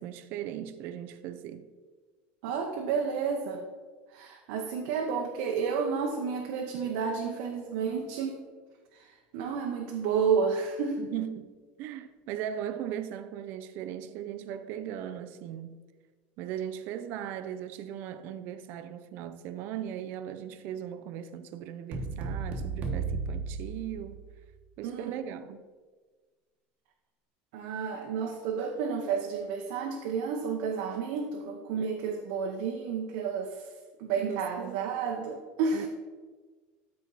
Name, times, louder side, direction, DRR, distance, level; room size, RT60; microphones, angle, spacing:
voice 1, 0.0-1.7 11.0-11.5 11.8-15.8 16.4-24.2 24.8-25.6 31.8-32.2 34.2-34.8 35.7-35.9, right 10 dB, 50° right, 0.5 m, -38 dB
voice 2, 2.4-3.6 4.1-8.4 8.9-11.1 24.8-25.1 27.5-33.7 34.0-35.9, right 6 dB, 75° right, 1.0 m, -31 dB
sound 1, 21.9-24.4, right 4 dB, 35° right, 1.2 m, -34 dB
13.0 x 4.4 x 4.1 m
cardioid pair, 170°, 4 cm